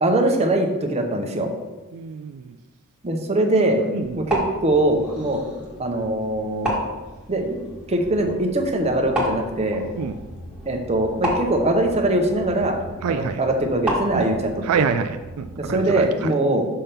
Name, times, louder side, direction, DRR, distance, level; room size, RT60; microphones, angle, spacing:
voice 1, 0.0-1.5 3.0-3.8 4.1-5.4 5.8-6.7 7.3-9.8 10.6-12.8 13.1-14.9 15.6-16.7, right 1 dB, 30° right, 3 dB, 0.7 m, -22 dB
voice 2, 1.9-2.6 3.9-4.2 10.0-10.2 13.0-13.4 14.1-14.4 14.6-16.1, right 6 dB, 70° right, 9 dB, 0.3 m, -26 dB
sound 1, 4.0-14.6, equal, 5° right, 1.4 m, -32 dB
sound 2, 7.9-15.6, right 1 dB, 75° left, 2.1 m, -43 dB
5.5 x 3.5 x 5.7 m, 1.2 s
head